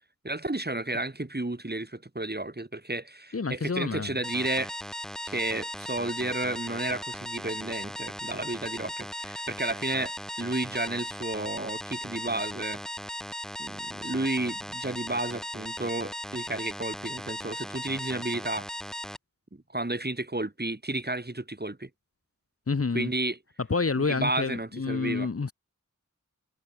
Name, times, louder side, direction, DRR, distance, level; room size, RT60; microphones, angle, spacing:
voice 1, 0.2-4.7 5.3-12.8 13.6-18.7 19.5-21.9 22.9-23.4 24.0-25.3, right 2 dB, 30° right, 3.6 m, -32 dB
voice 2, 3.3-4.2 22.7-23.1 23.7-25.5, left 4 dB, 45° left, 0.9 m, -28 dB
sound 1, 4.2-19.2, equal, ahead, 3.1 m, -37 dB
wide cardioid pair, 55°, 31 cm